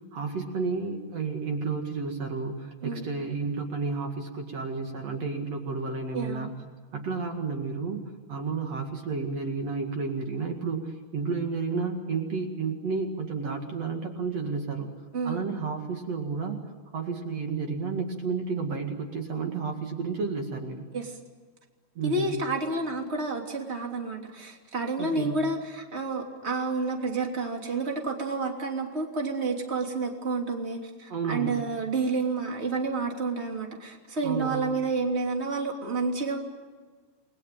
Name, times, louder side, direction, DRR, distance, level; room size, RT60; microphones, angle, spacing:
voice 1, 0.1-6.5 6.9-8.0 8.3-14.9 15.2-16.6 16.9-20.9 22.0-22.4 25.0-25.4 31.1-31.6 34.2-34.7, right 4 dB, 60° right, 3 dB, 3.1 m, -31 dB
voice 2, 6.1-6.5 15.1-15.4 20.9-21.1 22.0-36.4, right 3 dB, 20° right, 1 dB, 3.2 m, -30 dB
29.5 x 21.0 x 9.1 m, 1.4 s
omnidirectional pair, 3.4 m